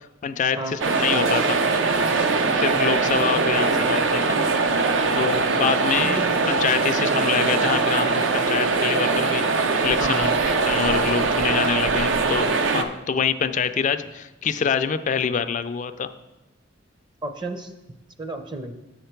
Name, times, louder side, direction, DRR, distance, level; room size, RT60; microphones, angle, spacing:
voice 1, 0.0-1.6 2.6-4.4 5.1-16.1, left 7 dB, 40° left, 10 dB, 0.3 m, -26 dB
sound 1, 0.8-12.8, right 4 dB, 85° right, 0.6 m, -22 dB
voice 2, 6.0-6.6 10.0-10.3 17.2-17.7 18.2-18.7, right 2 dB, 25° right, 7 dB, 0.5 m, -32 dB
7.4 x 6.5 x 4.5 m, 1.0 s
head